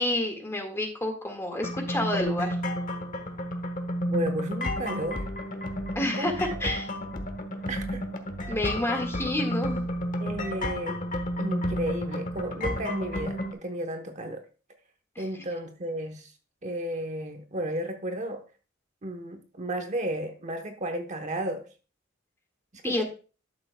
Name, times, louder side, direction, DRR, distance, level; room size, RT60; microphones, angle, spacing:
voice 1, 0.0-2.6 5.9-6.9 8.5-9.8 15.1-15.3 22.8-23.0, left 1 dB, 15° left, 3 dB, 1.7 m, -29 dB
sound 1, 1.6-13.5, equal, 40° left, 1.2 m, -31 dB
voice 2, 4.1-5.2 6.2-6.4 7.7-8.0 10.2-11.0 11.4-14.4 15.2-16.3 16.6-18.4 19.0-21.7 22.9-23.0, right 1 dB, 40° right, 7 dB, 0.9 m, -33 dB
11.5 x 6.7 x 2.2 m, 0.34 s
head